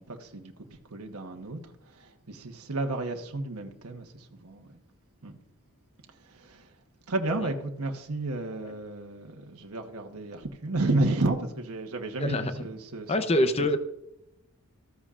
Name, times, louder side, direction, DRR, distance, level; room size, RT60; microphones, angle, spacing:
voice 1, 0.0-4.8 5.2-5.3 6.1-6.7 7.1-13.3, right 2 dB, 80° right, 1.2 m, -32 dB
voice 2, 12.2-12.5 13.1-13.8, left 1 dB, 25° left, 0.7 m, -25 dB
14.0 x 14.0 x 2.5 m
head